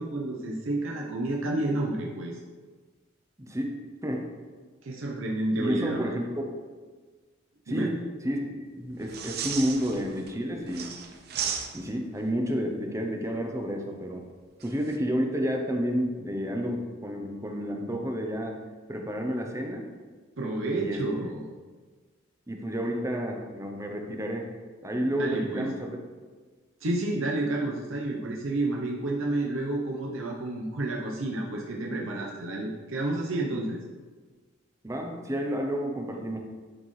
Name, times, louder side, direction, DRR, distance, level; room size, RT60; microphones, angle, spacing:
voice 1, 0.0-2.4 4.8-6.1 7.7-7.9 20.4-21.4 25.2-25.7 26.8-33.8, right 2 dB, 85° right, -2 dB, 0.8 m, -30 dB
voice 2, 3.4-3.7 4.0-4.3 5.6-6.5 7.7-10.9 11.7-14.3 14.6-18.6 18.9-19.9 20.8-21.0 22.5-24.5 24.8-25.9 34.8-36.4, equal, 15° right, 2 dB, 0.7 m, -30 dB
sound 1, 9.0-10.3 10.7-12.1 14.6-15.0, right 7 dB, 50° right, 0.6 m, -35 dB
10.5 x 4.3 x 3.2 m, 1.4 s
head